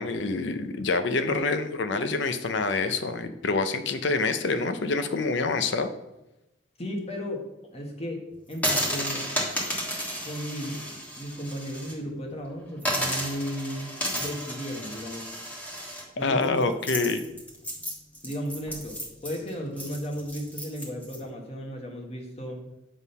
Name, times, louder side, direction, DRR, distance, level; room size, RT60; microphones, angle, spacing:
voice 1, 0.0-5.9 16.2-17.2, left 3 dB, 65° left, 9 dB, 0.6 m, -26 dB
voice 2, 6.8-7.4 7.7-8.2 8.5-9.2 10.2-10.8 11.2-15.3 16.2-16.6 18.2-22.6, equal, 35° left, 1 dB, 1.3 m, -35 dB
sound 1, 8.5-11.9 12.3-12.4 12.8-21.2, equal, 10° left, 1.4 m, -32 dB
8.3 x 3.7 x 5.5 m, 0.96 s
head